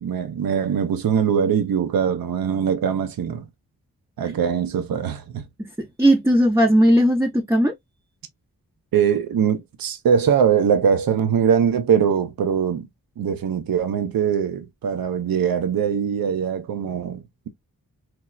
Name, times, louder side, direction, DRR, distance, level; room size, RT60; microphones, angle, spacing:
voice 1, 0.0-3.5 4.2-5.4 8.9-12.9 13.2-17.5, right 7 dB, 65° right, 0.6 m, -22 dB
voice 2, 5.6-7.7, equal, 5° right, 0.5 m, -18 dB
4.4 x 2.0 x 2.3 m
cardioid pair, 65°, 37 cm